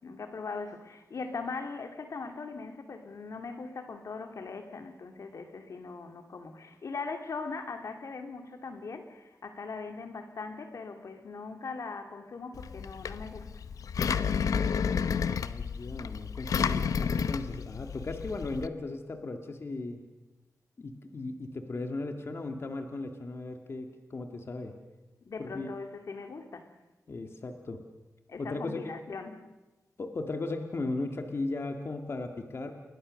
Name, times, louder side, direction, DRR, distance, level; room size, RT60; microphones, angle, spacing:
voice 1, 0.0-13.6 25.2-26.7 28.3-29.4, left 4 dB, 65° left, 6 dB, 2.3 m, -40 dB
Engine, 12.6-18.7, left 6 dB, 90° left, 0.8 m, -31 dB
voice 2, 15.1-20.0 20.8-24.7 25.4-25.7 27.1-27.8 28.4-28.8 30.0-32.7, left 2 dB, 50° left, 5 dB, 2.0 m, -36 dB
29.0 x 22.0 x 6.5 m, 1.1 s
wide cardioid pair, 110°, 6 cm